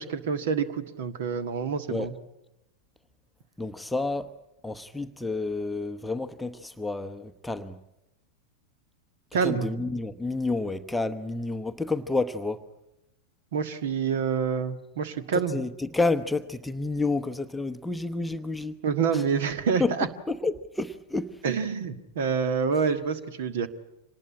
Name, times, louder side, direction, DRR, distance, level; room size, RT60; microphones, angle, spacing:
voice 1, 0.0-2.1 9.3-9.7 13.5-15.6 18.8-20.1 21.4-23.7, right 6 dB, 55° right, 1.6 m, -27 dB
voice 2, 3.6-4.3 4.6-7.8 9.4-12.6 15.5-18.7 19.1-19.2 19.8-19.9 20.3-21.3, left 3 dB, 5° left, 0.9 m, -29 dB
26.0 x 19.5 x 8.6 m
figure-of-eight pair, 90°, 0 cm